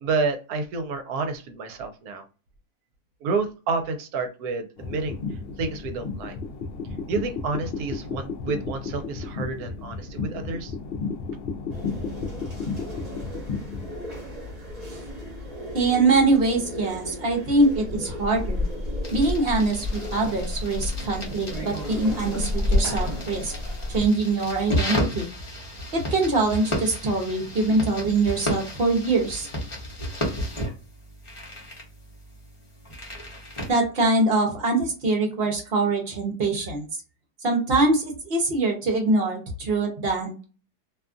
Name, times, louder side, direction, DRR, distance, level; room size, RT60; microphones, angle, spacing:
voice 1, 0.0-2.2 3.2-5.2 5.6-6.4 7.1-10.7, right 4 dB, 75° right, 7 dB, 1.1 m, -29 dB
sound 1, 4.8-13.9, left 4 dB, 65° left, 0.5 m, -33 dB
sound 2, 11.7-24.0, left 1 dB, 30° right, 1.1 m, -31 dB
voice 2, 15.7-18.7 19.1-23.5 23.9-25.3 25.9-29.5 33.7-36.8 37.4-40.4, right 2 dB, 50° right, 2 dB, 0.8 m, -23 dB
sound 3, 19.0-33.7, equal, 25° left, 0.7 m, -33 dB
2.8 x 2.3 x 2.5 m, 0.33 s
omnidirectional pair, 1.7 m